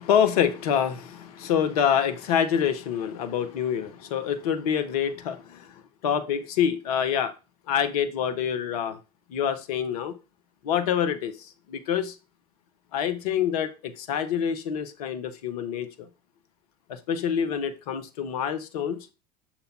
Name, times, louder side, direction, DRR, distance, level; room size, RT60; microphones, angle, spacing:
voice 1, 0.0-5.7 6.0-7.3 7.7-9.0 9.3-10.1 10.6-12.1 12.9-16.1 16.9-19.0, left 8 dB, 70° left, 0.8 m, -26 dB
6.7 x 2.9 x 5.2 m
hypercardioid pair, 75°, 20 cm